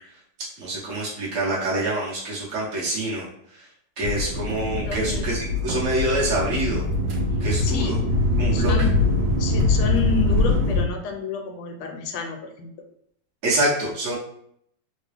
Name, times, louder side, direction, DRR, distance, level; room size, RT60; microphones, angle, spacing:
voice 1, 0.6-3.3 3.5-3.7 4.0-6.8 7.4-8.0 8.4-8.9 13.4-14.1, right 1 dB, 40° right, -6 dB, 1.4 m, -26 dB
sound 1, 4.0-10.8, left 2 dB, 75° right, 1.4 m, -23 dB
voice 2, 4.8-5.3 7.6-8.0 8.5-8.9 9.4-12.7, left 6 dB, 85° left, 4 dB, 1.4 m, -30 dB
3.7 x 2.2 x 3.4 m, 0.69 s
omnidirectional pair, 2.3 m